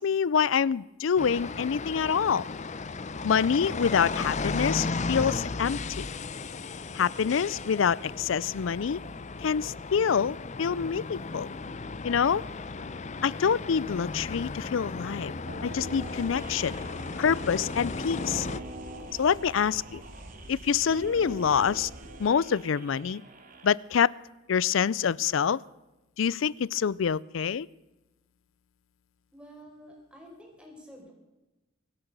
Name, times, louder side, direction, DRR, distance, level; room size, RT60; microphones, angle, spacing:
voice 1, 0.0-2.5 3.2-6.1 6.9-9.0 9.4-11.5 12.0-12.4 13.2-15.3 15.6-16.7 17.2-18.5 19.2-20.0 20.5-21.9 22.2-23.2 23.6-24.1 24.5-25.6 26.2-27.7, left 7 dB, 90° left, 23 dB, 0.4 m, -26 dB
sound 1, 1.2-18.6, left 3 dB, 40° left, 0.7 m, -35 dB
sound 2, 15.5-23.1, equal, 80° right, 2.1 m, -43 dB
sound 3, 16.3-23.7, right 4 dB, 45° right, 2.1 m, -51 dB
voice 2, 29.3-31.1, equal, 5° right, -1 dB, 4.7 m, -49 dB
23.5 x 8.9 x 6.8 m, 1.1 s
head